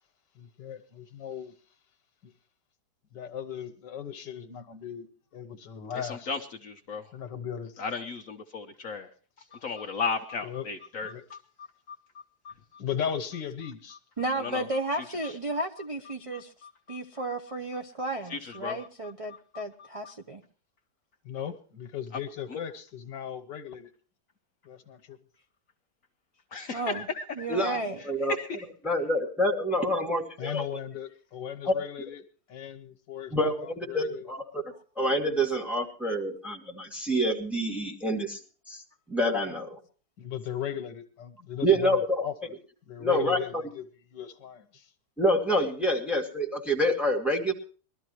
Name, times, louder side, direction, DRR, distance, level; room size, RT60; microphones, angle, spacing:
voice 1, 0.4-1.6 2.2-2.3 3.1-5.1 5.3-6.3 7.1-7.8 10.4-10.7 11.0-11.2 12.8-14.0 21.3-23.9 24.7-25.2 30.4-32.2 32.5-33.5 33.9-34.3 40.2-42.5 42.9-43.9 44.1-44.9, left 8 dB, 80° left, 7 dB, 1.8 m, -37 dB
voice 2, 5.9-7.0 7.8-9.1 9.5-11.4 11.9-12.0 12.4-12.5 14.4-14.7 15.2-15.3 16.3-17.0 18.3-18.8 19.5-19.6 22.5-22.6 26.5-27.2 28.3-28.5, left 4 dB, 55° left, 5 dB, 1.2 m, -35 dB
voice 3, 14.2-16.5 16.9-20.4 26.7-27.1 27.4-28.0, right 2 dB, 40° right, 5 dB, 0.4 m, -33 dB
voice 4, 27.5-28.4 28.8-30.6 31.7-31.8 33.3-34.6 35.0-38.4 38.7-38.8 39.1-39.8 41.6-42.3 43.0-43.6 45.2-47.5, equal, ahead, 0 dB, 2.2 m, -27 dB
22.0 x 13.0 x 3.1 m, 0.38 s
omnidirectional pair, 1.9 m